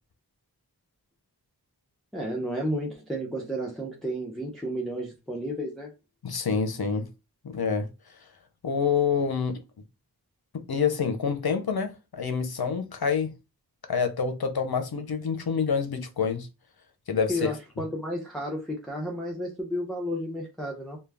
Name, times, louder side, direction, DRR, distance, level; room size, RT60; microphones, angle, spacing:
voice 1, 2.1-5.9 17.3-21.0, equal, ahead, 0.7 m, -32 dB
voice 2, 6.2-7.1 7.4-7.9 8.6-9.6 10.7-13.3 13.9-16.5 17.1-17.5, left 6 dB, 65° left, 0.6 m, -27 dB
2.3 x 2.2 x 3.3 m
wide cardioid pair, 45°, 39 cm